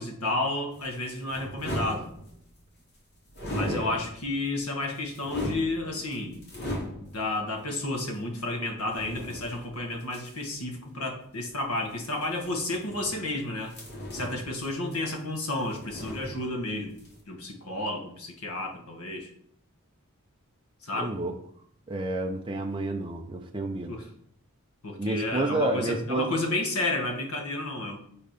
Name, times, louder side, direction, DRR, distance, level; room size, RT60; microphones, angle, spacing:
voice 1, 0.0-2.1 3.5-6.4 7.0-13.8 14.1-17.0 17.3-19.3 20.8-21.1 23.9-24.1 24.8-28.0, left 2 dB, 80° left, 3 dB, 1.6 m, -31 dB
sound 1, 0.7-2.6 3.3-4.4 4.8-7.3 8.0-8.1 8.9-10.6 11.9-13.3 13.7-15.3 15.5-16.7 17.0-17.2, equal, 50° left, 2.4 m, -38 dB
voice 2, 3.6-4.0 21.0-21.3 21.9-23.9 25.0-26.3, right 2 dB, 20° right, 1 dB, 0.7 m, -29 dB
8.8 x 4.0 x 5.1 m, 0.66 s
head